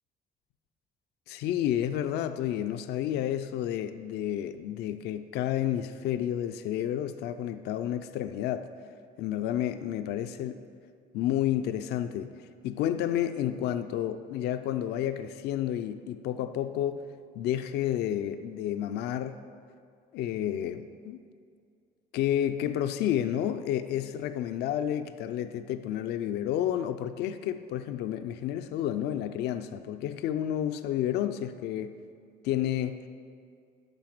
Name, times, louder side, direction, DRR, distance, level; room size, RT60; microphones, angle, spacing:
voice 1, 1.3-8.7 9.2-10.6 11.1-17.0 17.4-19.4 20.1-21.2 22.1-32.0 32.4-33.1, left 11 dB, 75° left, 9 dB, 0.4 m, -30 dB
8.9 x 5.8 x 6.0 m, 2.2 s
cardioid pair, 110°, 17 cm